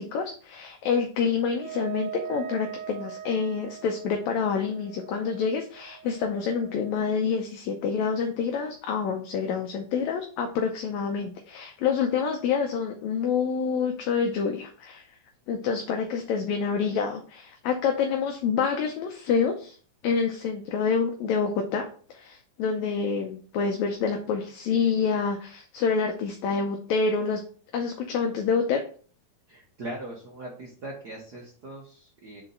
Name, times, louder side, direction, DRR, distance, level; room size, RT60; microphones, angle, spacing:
voice 1, 0.0-15.0 15.5-19.7 20.0-27.4 27.7-28.8, left 5 dB, 75° left, 3 dB, 1.9 m, -27 dB
Wind instrument woodwind instrument, 1.5-7.2, right 9 dB, 80° right, 1.9 m, -41 dB
voice 2, 29.5-32.4, right 1 dB, 55° right, -3 dB, 1.1 m, -40 dB
5.3 x 4.0 x 5.5 m, 0.43 s
omnidirectional pair, 3.6 m